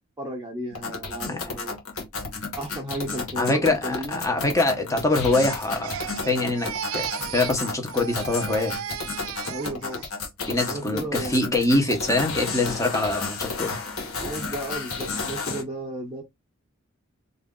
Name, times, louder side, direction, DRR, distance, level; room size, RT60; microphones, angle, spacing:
voice 1, 0.2-1.7 2.6-4.2 9.5-10.1 10.7-11.7 14.2-16.2, right 1 dB, 15° right, 0.8 m, -34 dB
sound 1, 0.7-15.6, left 4 dB, 85° left, 1.2 m, -32 dB
voice 2, 1.2-1.5 3.4-6.7 6.9-8.8 10.4-13.8, left 2 dB, 15° left, 0.9 m, -24 dB
Crying sobbing, 5.1-7.6 7.9-10.1 10.5-10.9, right 9 dB, 75° right, 0.4 m, -35 dB
3.1 x 2.6 x 3.7 m
head